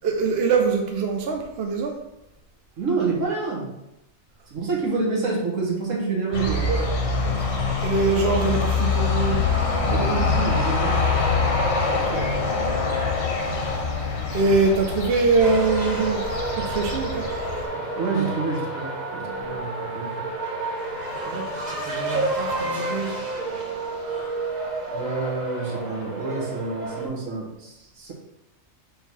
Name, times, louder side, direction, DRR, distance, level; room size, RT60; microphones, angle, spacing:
voice 1, 0.0-1.9 6.7-6.9 7.2-7.3 7.8-9.5 9.8-10.2 12.1-12.3 14.3-17.2 21.2-21.4 21.9-23.1, right 4 dB, 55° right, 3 dB, 0.9 m, -23 dB
voice 2, 2.8-3.7 4.5-6.7 9.9-11.1 14.1-14.4 17.7-20.3 24.9-28.1, right 4 dB, 75° right, -1 dB, 1.7 m, -28 dB
sound 1, 6.3-17.6, left 4 dB, 60° left, 1.2 m, -24 dB
sound 2, 15.4-27.1, right 2 dB, 35° right, 1.1 m, -30 dB
4.5 x 3.8 x 5.4 m, 0.87 s
omnidirectional pair, 1.4 m